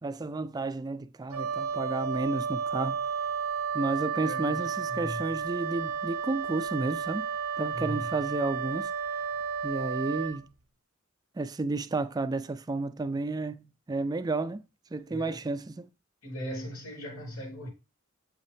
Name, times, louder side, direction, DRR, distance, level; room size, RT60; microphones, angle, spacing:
voice 1, 0.0-3.1 3.7-7.3 7.6-8.9 9.6-10.5 11.4-14.6 14.9-15.9, right 3 dB, 20° right, 0.3 m, -32 dB
Wind instrument woodwind instrument, 1.3-10.4, right 6 dB, 85° right, 0.7 m, -32 dB
voice 2, 4.1-5.2 7.7-8.1 15.1-15.4 16.2-17.7, equal, 85° left, 3.2 m, -38 dB
7.5 x 5.4 x 3.4 m
head